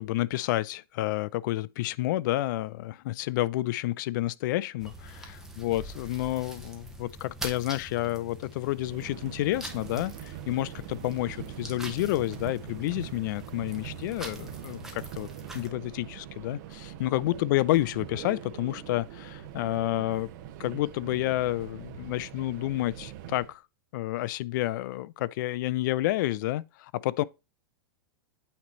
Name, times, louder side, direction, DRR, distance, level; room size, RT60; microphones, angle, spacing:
voice 1, 0.0-15.3 15.5-20.3 20.6-23.6 23.9-27.2, left 16 dB, 60° left, 0.4 m, -30 dB
sound 1, 4.8-15.7, right 1 dB, 5° right, 0.9 m, -44 dB
Subway metro underground, 8.7-23.6, right 11 dB, 50° right, 0.9 m, -43 dB
8.6 x 3.1 x 4.2 m
supercardioid pair, 145°, 12 cm